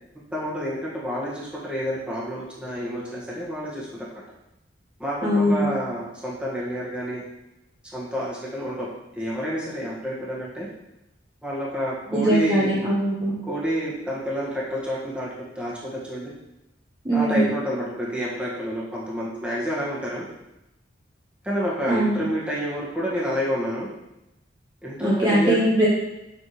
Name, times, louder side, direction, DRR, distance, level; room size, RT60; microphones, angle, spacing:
voice 1, 0.3-3.9 5.0-7.2 7.9-8.9 9.1-10.7 11.4-12.7 13.5-15.3 15.5-16.3 17.1-20.2 21.4-23.9 24.8-25.6, equal, 5° right, -6 dB, 1.5 m, -29 dB
voice 2, 5.2-5.7 12.1-13.3 17.0-17.5 21.9-22.2 25.0-25.9, right 1 dB, 20° right, -7 dB, 1.0 m, -21 dB
6.1 x 5.7 x 3.1 m, 0.91 s
head